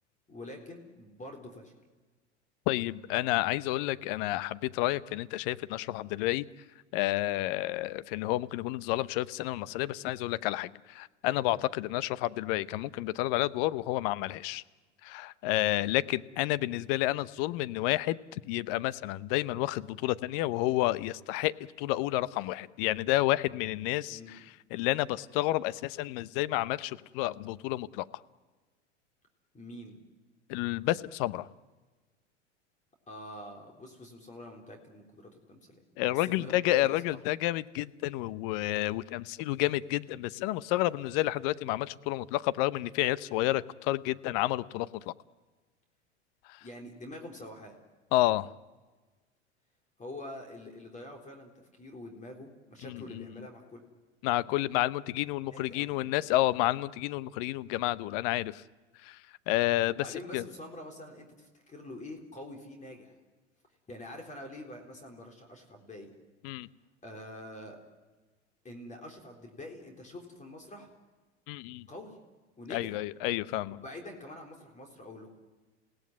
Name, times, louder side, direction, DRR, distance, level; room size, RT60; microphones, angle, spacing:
voice 1, 0.3-1.7 24.1-24.3 29.5-30.0 33.1-35.8 36.1-37.2 46.6-47.8 50.0-51.5 51.8-53.8 55.5-56.0 59.9-63.1 63.9-66.1 67.0-67.8 68.6-70.9 71.9-72.2 72.6-73.0 73.7-75.3, left 1 dB, 20° left, 3 dB, 3.9 m, -45 dB
voice 2, 2.7-6.4 6.9-14.6 15.0-24.4 24.7-28.0 30.5-31.5 36.0-45.1 46.5-46.6 48.1-48.5 52.8-53.3 54.2-58.6 59.0-59.2 59.5-60.0 60.3-60.4 66.4-66.7 71.5-71.9 72.7-73.8, left 16 dB, 50° left, 17 dB, 0.9 m, -30 dB
28.0 x 17.5 x 9.4 m, 1.3 s
hypercardioid pair, 85°, 35 cm